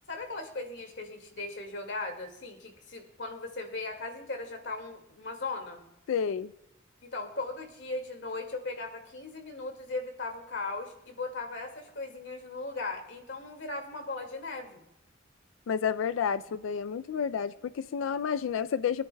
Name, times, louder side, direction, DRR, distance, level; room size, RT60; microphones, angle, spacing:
voice 1, 0.1-5.8 7.0-14.8, left 3 dB, 65° left, 2.0 m, -38 dB
voice 2, 6.1-6.5 15.7-19.1, left 7 dB, 85° left, 0.3 m, -30 dB
23.5 x 10.0 x 2.2 m
head